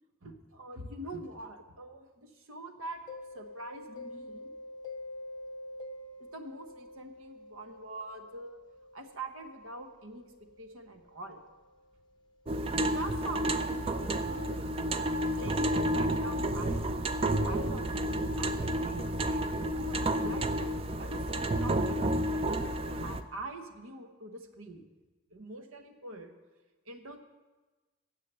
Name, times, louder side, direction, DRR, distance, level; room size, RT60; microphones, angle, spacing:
voice 1, 0.2-3.0 3.3-4.5 6.3-8.6 8.9-11.4 12.6-14.6 15.4-16.9 17.4-22.5 23.0-24.8 25.3-26.3 26.9-27.2, right 2 dB, 90° right, 6 dB, 1.1 m, -45 dB
Mallet percussion, 3.1-12.7, left 2 dB, 20° left, 0.7 m, -48 dB
sound 1, 12.5-23.2, right 1 dB, 25° right, 0.4 m, -30 dB
9.9 x 7.5 x 6.7 m, 1.2 s
head